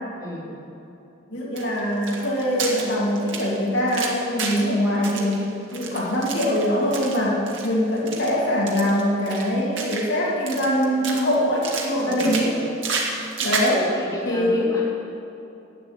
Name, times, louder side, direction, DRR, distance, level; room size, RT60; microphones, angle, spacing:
voice 1, 0.2-0.5 12.0-12.4 13.7-14.8, left 1 dB, 15° left, -7 dB, 3.0 m, -34 dB
voice 2, 1.3-12.5 13.4-13.9 14.2-14.7, equal, 60° left, -5 dB, 2.4 m, -23 dB
sound 1, 1.6-4.7 5.0-7.2 7.5-7.7 8.0-8.3 8.7-10.2 10.5-11.3 11.6-13.8, right 4 dB, 65° right, 1.9 m, -30 dB
11.5 x 8.2 x 9.0 m, 2.9 s
head